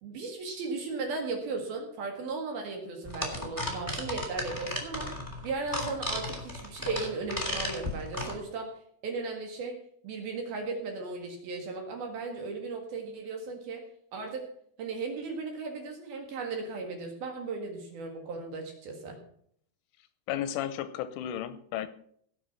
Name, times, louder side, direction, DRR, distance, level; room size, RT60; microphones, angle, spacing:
voice 1, 0.0-5.1 5.4-8.7 9.0-9.8 10.0-13.8 14.1-14.5 14.8-19.2, right 3 dB, 60° right, 2 dB, 3.1 m, -36 dB
sound 1, 3.0-8.3, left 1 dB, 10° right, 1.0 m, -34 dB
voice 2, 20.3-21.9, left 11 dB, 80° left, 12 dB, 3.1 m, -33 dB
17.5 x 7.4 x 5.8 m, 0.65 s
omnidirectional pair, 5.9 m